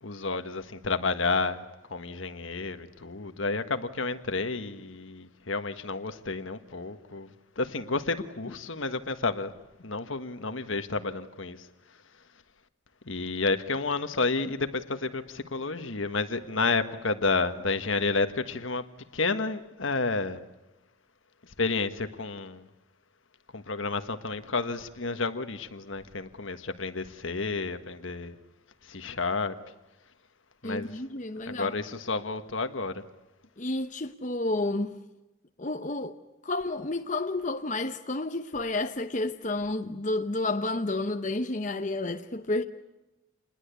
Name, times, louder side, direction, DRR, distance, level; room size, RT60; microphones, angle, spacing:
voice 1, 0.0-1.6 1.9-7.3 7.6-9.5 9.8-11.7 13.0-18.9 19.1-20.4 21.6-22.6 23.5-28.3 28.8-29.6 30.6-30.9 31.5-33.0, left 3 dB, 75° left, 1.5 m, -30 dB
voice 2, 30.6-31.8 33.6-35.0 35.6-36.2 36.4-42.6, left 2 dB, 35° left, 0.9 m, -30 dB
28.5 x 21.0 x 8.3 m
head